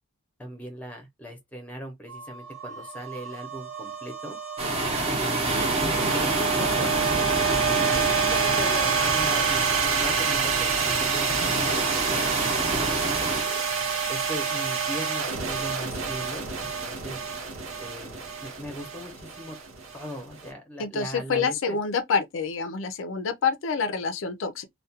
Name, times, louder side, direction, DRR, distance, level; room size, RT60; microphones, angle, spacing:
voice 1, 0.4-4.4 5.1-7.5 7.9-9.7 10.0-13.7 14.1-17.2 17.8-19.6 19.9-21.8, equal, 5° left, 0.7 m, -39 dB
sound 1, 2.1-20.4, right 6 dB, 75° right, 0.8 m, -28 dB
sound 2, 4.6-13.5, right 2 dB, 30° right, 0.6 m, -28 dB
voice 2, 20.8-24.6, left 5 dB, 65° left, 0.4 m, -27 dB
2.3 x 2.1 x 2.7 m
head